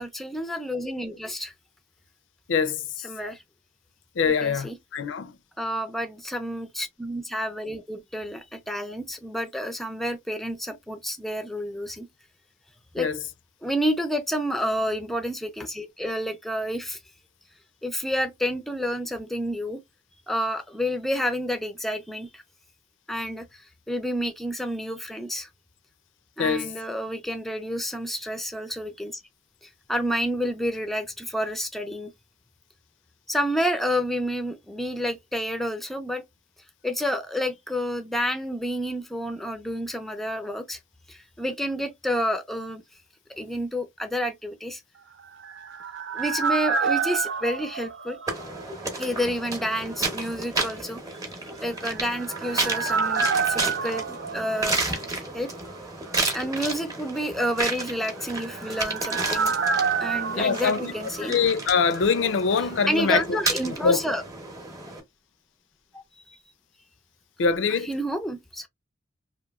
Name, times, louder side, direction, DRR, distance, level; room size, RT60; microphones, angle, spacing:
voice 1, 0.0-1.5 3.0-3.4 4.2-4.8 5.6-12.1 12.9-13.1 13.6-17.0 17.8-19.8 20.3-22.4 23.1-25.5 26.4-29.2 29.9-32.1 33.3-36.2 36.8-40.8 41.1-42.8 43.4-44.8 46.1-48.2 49.0-51.0 51.6-55.0 55.3-55.5 56.3-59.5 60.0-61.4 62.9-64.2 65.9-66.0 67.8-68.7, equal, ahead, 0.4 m, -29 dB
voice 2, 2.5-2.8 4.2-5.3 13.0-13.2 26.4-26.7 60.4-60.9 61.2-63.2 63.7-64.0 67.4-67.9, left 5 dB, 85° left, 0.4 m, -23 dB
sound 1, 45.1-49.0 49.2-49.3 51.7-55.4 55.7-55.8 58.1-61.9 62.2-62.3, right 5 dB, 70° right, 0.5 m, -29 dB
sound 2, 48.3-65.0, right 2 dB, 20° right, 0.8 m, -32 dB
2.9 x 2.5 x 2.3 m
head